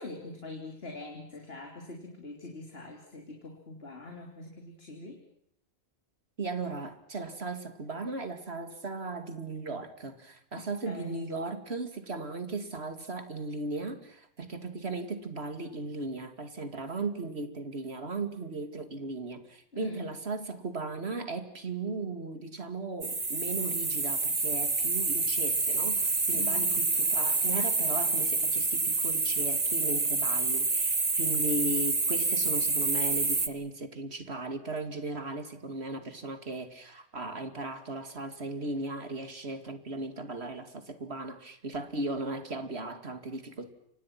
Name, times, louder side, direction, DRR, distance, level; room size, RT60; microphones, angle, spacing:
voice 1, 0.0-5.2 10.5-11.2 19.7-20.1 26.3-26.7, left 3 dB, 75° left, 3.5 m, -44 dB
voice 2, 6.4-43.7, right 2 dB, 90° right, 2.7 m, -37 dB
sound 1, 23.0-33.5, right 3 dB, 40° right, 1.7 m, -28 dB
29.5 x 25.5 x 6.0 m
omnidirectional pair, 1.0 m